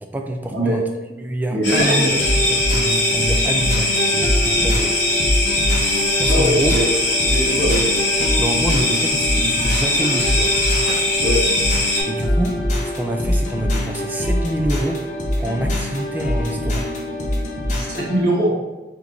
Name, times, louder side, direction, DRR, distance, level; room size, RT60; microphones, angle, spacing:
voice 1, 0.0-0.8 1.2-5.0 6.2-6.7 8.4-10.6 12.1-12.6 12.8-15.0 15.4-16.9, right 1 dB, 10° right, 3 dB, 0.3 m, -26 dB
voice 2, 1.5-2.1 6.3-6.9 7.2-7.9 11.2-11.4 17.7-18.5, equal, 60° right, -8 dB, 1.3 m, -21 dB
sound 1, 1.6-12.0, left 2 dB, 75° left, 1.5 m, -21 dB
sound 2, 2.2-18.2, equal, 45° left, 0.7 m, -23 dB
3.9 x 3.0 x 3.5 m, 1.1 s
head